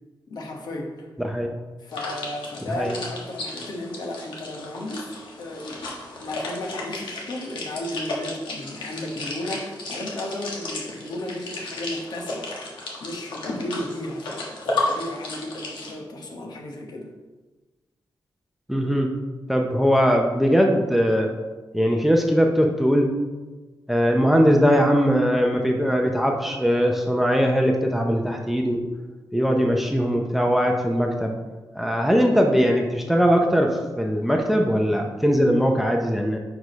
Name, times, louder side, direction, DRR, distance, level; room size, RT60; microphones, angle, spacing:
voice 1, 0.3-1.1 1.8-5.9 6.2-12.5 13.0-14.5 14.8-17.1, left 1 dB, 60° left, 1 dB, 1.1 m, -34 dB
voice 2, 1.2-1.5 2.8-2.9 18.7-19.1 19.5-21.3 21.7-23.1 23.9-28.8 29.3-31.4 31.7-36.4, equal, ahead, 2 dB, 0.6 m, -20 dB
sound 1, 1.9-15.9, left 2 dB, 80° left, 1.4 m, -33 dB
4.8 x 4.7 x 5.2 m, 1.3 s
wide cardioid pair, 125°, 8 cm